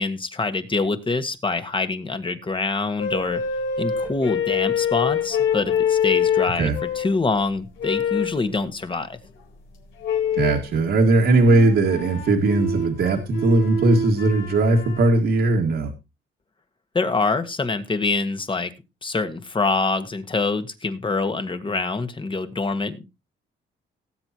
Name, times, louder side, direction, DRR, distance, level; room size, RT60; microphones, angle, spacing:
voice 1, 0.0-3.4 3.8-9.2 16.9-18.7 19.0-23.1, left 3 dB, 25° left, 9 dB, 1.6 m, -25 dB
sound 1, 3.0-7.2 7.8-8.4 10.0-10.7 11.3-15.2, left 6 dB, 75° left, 4.0 m, -25 dB
voice 2, 10.4-15.9, right 2 dB, 65° right, 1 dB, 2.0 m, -19 dB
18.5 x 7.8 x 2.9 m, 0.25 s
cardioid pair, 90°, 20 cm